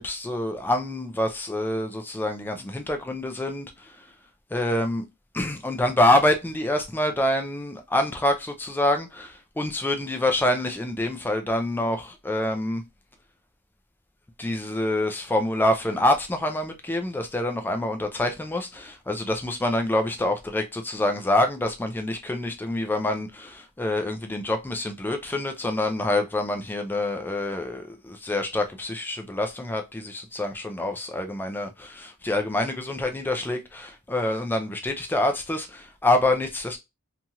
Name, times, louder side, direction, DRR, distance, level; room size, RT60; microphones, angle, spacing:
voice 1, 0.0-4.1 4.5-5.1 5.3-12.8 14.4-36.8, left 1 dB, 10° left, 0.3 m, -26 dB
2.9 x 2.4 x 2.8 m
head